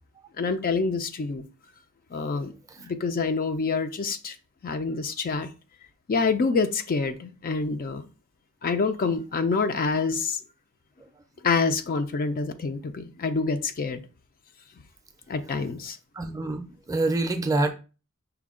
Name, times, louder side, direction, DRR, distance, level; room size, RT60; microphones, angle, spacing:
voice 1, 0.4-1.5 2.1-4.4 4.6-5.5 6.1-8.1 8.6-10.4 11.4-14.0 15.3-16.0, left 4 dB, 40° left, 0.4 m, -27 dB
voice 2, 16.2-17.7, right 2 dB, 15° right, 0.5 m, -26 dB
5.7 x 2.2 x 3.6 m
head